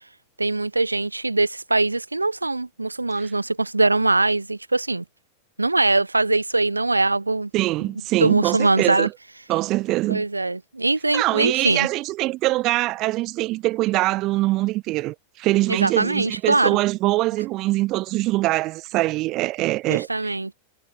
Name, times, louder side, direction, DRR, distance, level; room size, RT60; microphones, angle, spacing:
voice 1, 0.4-5.0 5.6-7.5 8.2-9.1 10.1-11.9 15.7-16.8 19.9-20.5, right 2 dB, 80° right, 0.5 m, -22 dB
voice 2, 7.5-9.1 9.5-10.2 11.1-20.3, right 18 dB, 40° right, 2.2 m, -23 dB
figure-of-eight pair, 90°, 0 cm